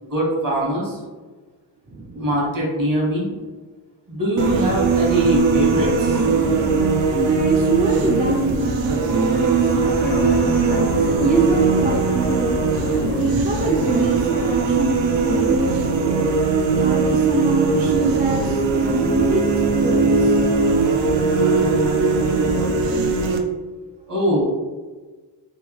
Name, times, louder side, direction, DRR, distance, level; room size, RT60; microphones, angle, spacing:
voice 1, 0.0-1.0 2.1-3.3 4.1-6.2 24.1-24.5, equal, 50° right, -4 dB, 1.3 m, -22 dB
voice 2, 1.9-2.3 7.1-12.6 13.1-15.9 16.8-20.4, right 3 dB, 25° right, -1 dB, 0.3 m, -25 dB
sound 1, 4.4-23.4, right 4 dB, 90° right, 0.5 m, -19 dB
sound 2, 9.8-16.1, left 3 dB, 60° left, 0.5 m, -33 dB
3.4 x 2.3 x 2.9 m, 1.3 s
wide cardioid pair, 95°, 43 cm